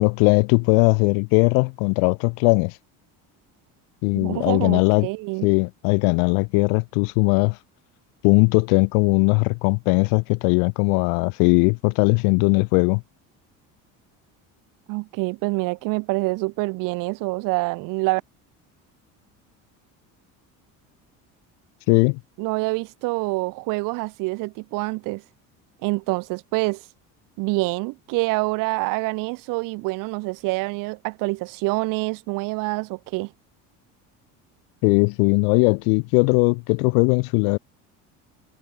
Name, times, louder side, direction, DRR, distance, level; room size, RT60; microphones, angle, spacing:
voice 1, 0.0-2.8 4.0-5.1 5.4-7.6 8.2-13.0 21.9-22.2 34.8-37.6, left 40 dB or more, 85° left, 0.5 m, -19 dB
voice 2, 4.2-5.5 14.9-18.2 22.4-25.2 25.8-26.8 27.4-33.3, right 25 dB, 65° right, 0.5 m, -26 dB
cardioid pair, 120°, 35 cm